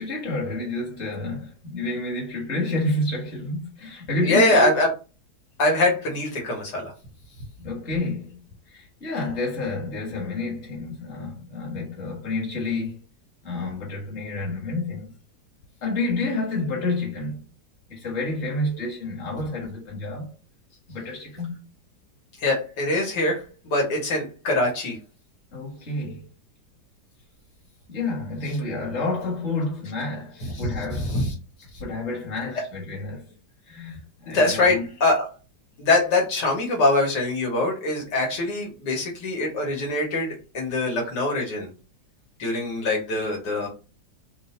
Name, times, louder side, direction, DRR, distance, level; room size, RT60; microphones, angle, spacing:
voice 1, 0.0-4.7 7.6-8.4 8.7-13.0 13.4-15.1 15.8-17.4 17.9-20.3 20.9-21.6 25.5-26.3 27.9-31.1 31.8-33.3 33.6-34.9, left 2 dB, 40° left, 1.6 m, -29 dB
voice 2, 4.2-4.9 5.6-6.9 22.4-25.0 30.5-31.3 31.7-31.8 34.3-35.3 35.8-41.7 42.4-43.7, left 2 dB, 80° left, 1.9 m, -23 dB
4.5 x 2.1 x 4.2 m
omnidirectional pair, 1.9 m